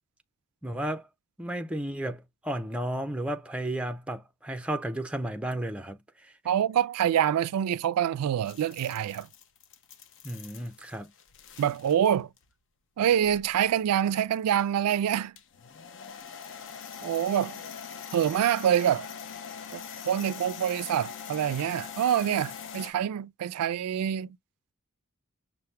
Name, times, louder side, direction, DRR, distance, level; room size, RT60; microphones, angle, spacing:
voice 1, 0.6-1.1 1.4-6.0 10.2-11.1, right 1 dB, 5° right, 0.5 m, -33 dB
voice 2, 6.5-9.3 11.6-12.3 13.0-15.3 17.0-17.6 18.1-19.1 19.7-24.3, right 9 dB, 85° right, 0.3 m, -26 dB
sound 1, 8.5-12.1 12.4-12.5 13.1-13.5 15.4-22.9, left 7 dB, 55° left, 0.6 m, -43 dB
5.7 x 2.1 x 3.2 m
head